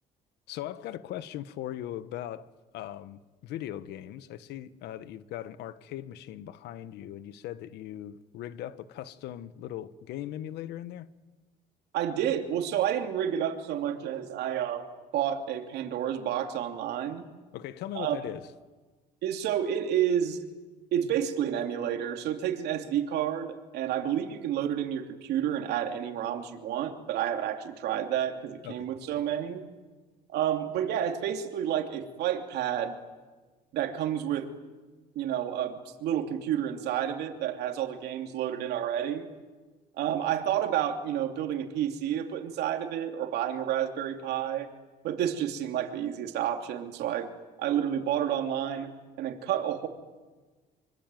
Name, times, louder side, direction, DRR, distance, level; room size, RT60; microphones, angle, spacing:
voice 1, 0.5-2.5 2.7-11.1 17.5-18.4 28.6-28.9, left 12 dB, 80° left, 1.3 m, -39 dB
voice 2, 11.9-14.9 15.1-17.3 17.9-18.2 19.2-20.4 20.9-29.6 30.3-33.0 33.7-34.5 35.1-39.3 40.0-44.7 45.0-47.3 47.6-48.9 49.2-49.9, right 10 dB, 75° right, 3.0 m, -30 dB
25.0 x 25.0 x 9.2 m
cardioid pair, 110°, 17 cm